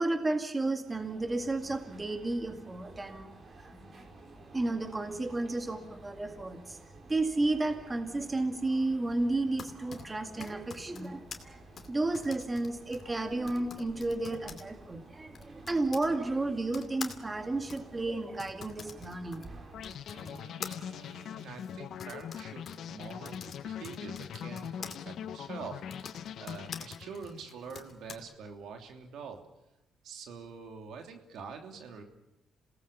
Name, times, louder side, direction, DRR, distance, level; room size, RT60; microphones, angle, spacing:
voice 1, 0.0-3.3 3.9-4.1 4.5-6.8 7.1-11.6 11.9-19.7, right 2 dB, 20° right, 6 dB, 2.1 m, -32 dB
sound 1, 0.8-20.0, right 2 dB, 45° right, 4.8 m, -53 dB
Typing, 9.3-16.1 16.7-25.0 25.8-28.2, left 6 dB, 50° left, 2.5 m, -47 dB
sound 2, 19.7-27.4, left 8 dB, 70° left, 0.9 m, -42 dB
voice 2, 20.1-29.4 30.0-32.0, right 5 dB, 75° right, 4 dB, 3.1 m, -46 dB
27.5 x 18.5 x 7.0 m, 0.91 s
cardioid pair, 90°, 0 cm